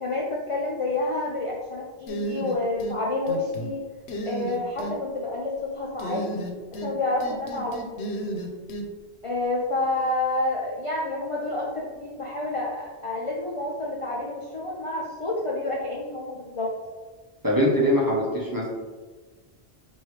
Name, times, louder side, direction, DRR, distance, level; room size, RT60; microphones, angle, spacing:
voice 1, 0.0-3.8 4.2-6.2 6.8-8.0 9.2-16.7, left 2 dB, 45° left, -4 dB, 0.5 m, -29 dB
sound 1, 2.1-3.0 3.3-3.7 4.1-4.9 6.0-6.9 7.2-8.8, right 1 dB, 85° left, 0.9 m, -32 dB
voice 2, 17.4-18.7, equal, 20° right, -4 dB, 0.7 m, -22 dB
4.7 x 2.6 x 3.2 m, 1.3 s
omnidirectional pair, 1.1 m